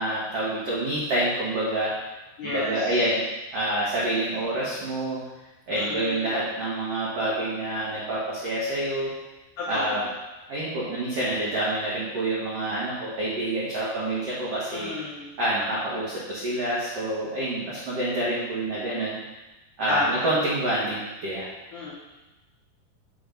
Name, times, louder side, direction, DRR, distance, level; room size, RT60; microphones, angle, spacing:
voice 1, 0.0-2.0 2.4-3.2 3.5-5.2 5.7-9.1 9.7-10.0 10.5-14.9 15.4-19.2 19.8-21.5, right 1 dB, 90° right, -8 dB, 1.3 m, -27 dB
voice 2, 2.4-3.0 5.7-6.3 9.6-10.1 14.7-15.3 19.9-20.3 21.7-21.9, left 2 dB, 85° left, -6 dB, 1.8 m, -31 dB
7.0 x 3.9 x 5.2 m, 1.0 s
omnidirectional pair, 5.1 m